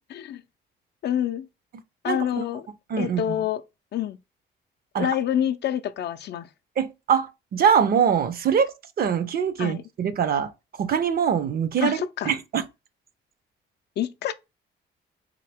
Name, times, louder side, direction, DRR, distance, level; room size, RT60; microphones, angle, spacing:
voice 1, 0.1-0.4 1.0-1.5 2.0-2.7 3.0-3.6 3.9-4.2 5.0-6.5 9.6-9.8 11.8-12.3 14.0-14.3, left 10 dB, 60° left, 0.4 m, -27 dB
voice 2, 2.1-2.4 2.9-3.4 4.9-5.1 6.8-10.5 10.8-12.0 12.2-12.6, right 7 dB, 50° right, 0.6 m, -23 dB
3.7 x 2.7 x 3.4 m
cardioid pair, 90°, 20 cm